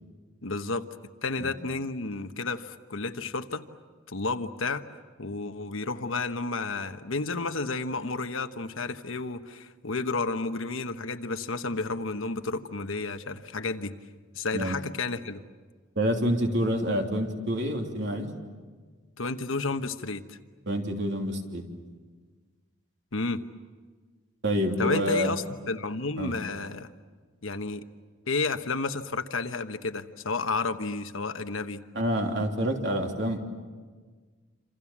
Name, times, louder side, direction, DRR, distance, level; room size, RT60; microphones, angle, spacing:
voice 1, 0.4-0.9 1.2-3.6 4.1-4.8 5.2-13.9 14.3-15.4 19.2-20.4 23.1-23.4 24.8-26.9 27.4-27.8 28.3-31.8, left 3 dB, 75° left, 8 dB, 1.2 m, -31 dB
voice 2, 16.0-18.3 20.7-21.6 24.4-25.3 26.2-26.3 31.9-33.4, equal, 60° right, 2 dB, 3.2 m, -27 dB
27.5 x 27.5 x 7.4 m, 1.5 s
head